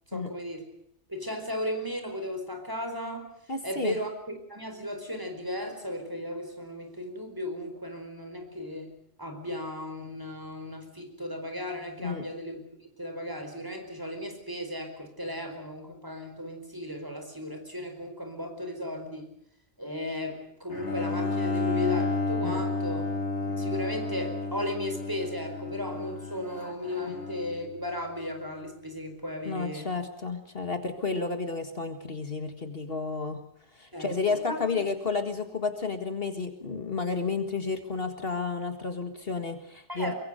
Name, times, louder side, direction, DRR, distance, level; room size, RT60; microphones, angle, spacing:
voice 1, 0.1-0.7 1.1-3.3 3.6-19.3 19.8-23.0 23.4-29.9 33.9-34.6 39.9-40.1, left 1 dB, 15° right, 6 dB, 4.7 m, -35 dB
voice 2, 3.5-4.0 12.0-12.3 22.4-22.6 27.1-27.2 29.5-33.4 33.7-40.1, left 4 dB, 55° left, 7 dB, 2.1 m, -31 dB
Bowed string instrument, 20.7-27.7, left 3 dB, 80° left, 3.4 m, -31 dB
23.5 x 23.5 x 6.7 m, 0.76 s
omnidirectional pair, 1.2 m